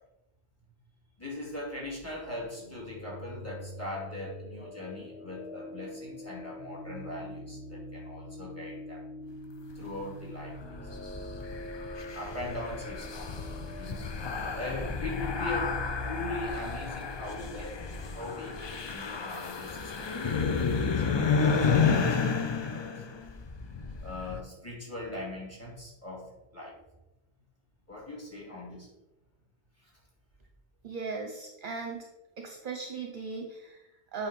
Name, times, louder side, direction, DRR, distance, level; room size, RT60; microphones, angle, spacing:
voice 1, 1.2-9.0 9.7-10.6 12.1-14.3 14.5-22.3 22.6-23.2 24.0-26.8 27.9-28.9 29.8-29.9, left 2 dB, 15° left, -4 dB, 2.2 m, -40 dB
sound 1, 2.6-18.6, left 1 dB, 75° left, 1.4 m, -43 dB
sound 2, 10.5-24.4, left 5 dB, 50° left, 0.3 m, -31 dB
voice 2, 30.8-32.0 32.4-34.3, right 4 dB, 55° right, 3 dB, 0.8 m, -38 dB
8.3 x 2.8 x 5.3 m, 0.98 s
omnidirectional pair, 1.1 m